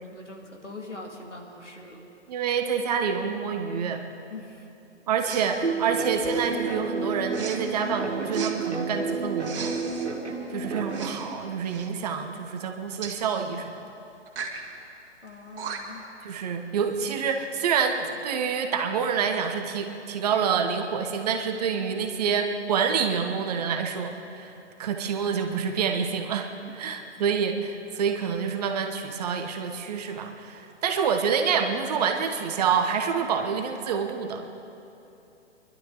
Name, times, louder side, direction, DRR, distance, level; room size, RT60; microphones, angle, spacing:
voice 1, 0.1-2.1 4.3-4.7 15.2-16.0 26.7-26.8, left 2 dB, 85° left, 0 dB, 2.3 m, -42 dB
voice 2, 2.3-4.0 5.1-9.7 10.5-13.8 16.2-34.4, right 6 dB, 35° right, 5 dB, 1.1 m, -27 dB
Respiratory sounds, 5.2-5.5 6.2-6.6 7.3-7.6 8.3-8.5 9.4-10.1 10.9-11.3 11.6-11.9 13.0-13.2 14.3-14.6 15.3-15.4 15.6-16.0, right 6 dB, 50° right, 1.9 m, -37 dB
sound 1, 5.6-11.1, right 4 dB, 70° right, 2.1 m, -30 dB
24.5 x 12.0 x 3.9 m, 2.9 s
figure-of-eight pair, 125°, 35 cm